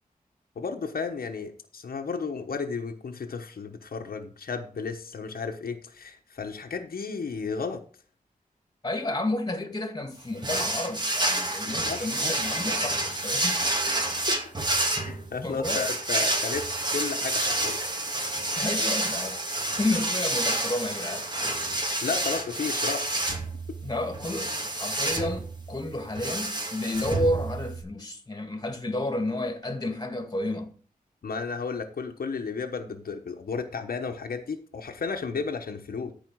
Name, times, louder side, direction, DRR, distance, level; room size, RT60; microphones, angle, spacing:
voice 1, 0.6-7.8 11.6-12.3 15.0-17.8 22.0-23.1 31.2-36.1, left 5 dB, 85° left, 1.2 m, -33 dB
voice 2, 8.8-13.6 15.3-15.8 18.5-19.4 19.8-21.3 23.8-30.7, left 1 dB, 25° left, 2.1 m, -31 dB
sound 1, 10.4-27.8, right 2 dB, 30° right, 2.1 m, -29 dB
14.0 x 4.9 x 4.8 m
wide cardioid pair, 85°, 15 cm